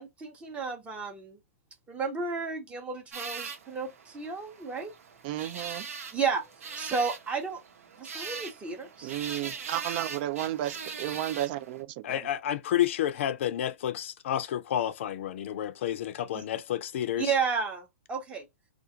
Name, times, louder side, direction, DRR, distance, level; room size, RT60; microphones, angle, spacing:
voice 1, 0.0-1.4 1.9-4.9 6.1-6.4 6.8-7.6 8.0-9.1 16.3-16.4 17.1-18.4, right 5 dB, 15° right, 0.7 m, -32 dB
sound 1, 3.1-11.8, right 5 dB, 75° right, 1.0 m, -41 dB
voice 2, 5.2-5.9 9.0-12.3, right 13 dB, 40° right, 0.3 m, -33 dB
voice 3, 12.0-17.3, left 11 dB, 55° left, 0.5 m, -30 dB
2.4 x 2.4 x 2.7 m
hypercardioid pair, 130°, 8 cm